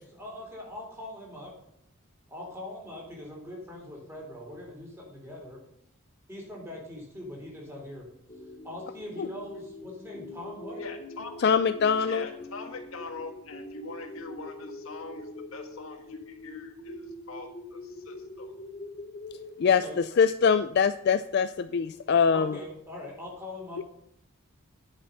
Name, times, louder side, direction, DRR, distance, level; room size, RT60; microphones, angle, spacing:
voice 1, 0.2-1.5 2.3-5.6 6.3-8.0 8.6-10.8 19.6-20.0 22.3-23.8, left 1 dB, 10° right, -2 dB, 3.7 m, -42 dB
sound 1, 8.3-20.7, left 2 dB, 30° left, 3.1 m, -44 dB
voice 2, 10.7-11.4 12.1-18.5, left 3 dB, 70° left, 4 dB, 1.6 m, -42 dB
voice 3, 11.4-12.3 19.6-19.8 20.2-22.6 23.8-23.9, left 6 dB, 50° left, 12 dB, 0.3 m, -23 dB
10.5 x 7.6 x 5.6 m, 0.77 s
head